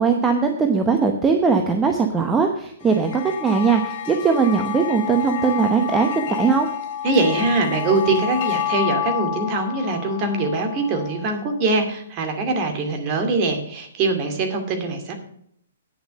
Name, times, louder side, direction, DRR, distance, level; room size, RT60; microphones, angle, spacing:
voice 1, 0.0-6.7, right 5 dB, 15° right, 4 dB, 1.0 m, -20 dB
sound 1, 2.8-11.4, left 10 dB, 45° left, 1.7 m, -29 dB
voice 2, 7.0-15.1, right 3 dB, 35° right, 4 dB, 2.4 m, -22 dB
9.8 x 7.0 x 6.4 m, 0.68 s
hypercardioid pair, 125°, 0 cm